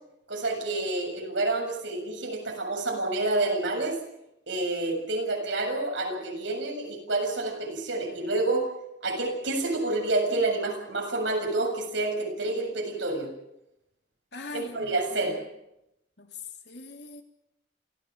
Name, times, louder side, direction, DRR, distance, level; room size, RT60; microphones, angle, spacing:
voice 1, 0.3-4.0 4.5-8.7 9.0-13.3 14.5-15.4, right 2 dB, 75° right, 2 dB, 7.6 m, -28 dB
voice 2, 14.3-15.2 16.2-16.3 16.7-17.2, left 2 dB, 60° left, 3 dB, 3.4 m, -41 dB
28.0 x 15.5 x 7.7 m, 0.84 s
head